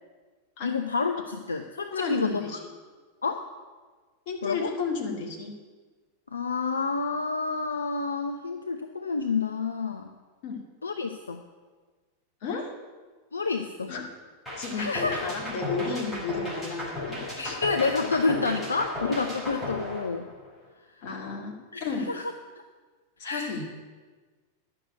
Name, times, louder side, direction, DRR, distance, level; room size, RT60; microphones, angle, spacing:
voice 1, 0.6-2.4 3.2-3.4 4.4-4.7 6.3-10.1 10.8-11.4 13.3-13.9 14.8-15.2 17.4-20.3 20.9-21.0 21.7-22.3 23.2-23.5, left 4 dB, 75° left, 6 dB, 0.6 m, -29 dB
voice 2, 1.9-2.6 4.3-5.5 10.4-10.6 12.4-12.7 13.9-14.1 14.6-17.6 21.0-21.6 21.8-22.1 23.2-23.7, left 4 dB, 45° left, 1 dB, 2.2 m, -33 dB
sound 1, 14.5-20.7, left 1 dB, 10° left, 4.8 m, -34 dB
10.5 x 6.6 x 9.2 m, 1.4 s
figure-of-eight pair, 90°, 0 cm